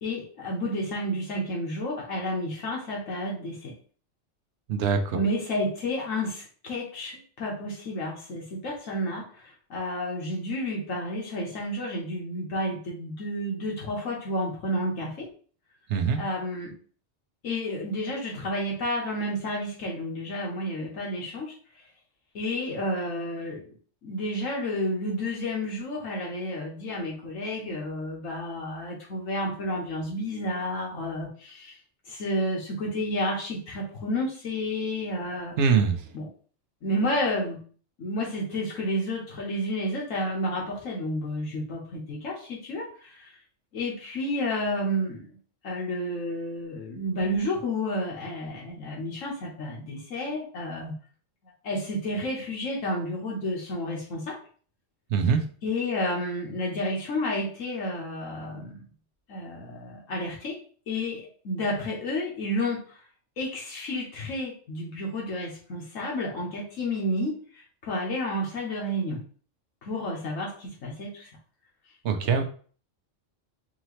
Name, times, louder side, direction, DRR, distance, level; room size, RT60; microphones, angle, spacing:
voice 1, 0.0-3.7 5.1-15.3 16.1-16.7 17.4-21.5 22.3-23.8 24.0-31.8 32.1-35.6 36.1-36.3 36.8-37.6 38.0-43.3 43.7-45.4 45.6-50.9 51.6-54.4 55.6-58.8 59.3-60.6 60.9-62.8 63.4-67.4 67.8-69.2 69.8-71.3, left 1 dB, 90° left, -1 dB, 1.6 m, -31 dB
voice 2, 4.7-5.2 15.9-16.2 35.6-36.0 55.1-55.4 72.0-72.4, right 6 dB, 70° right, 7 dB, 0.9 m, -23 dB
4.6 x 2.8 x 3.1 m, 0.43 s
omnidirectional pair, 1.3 m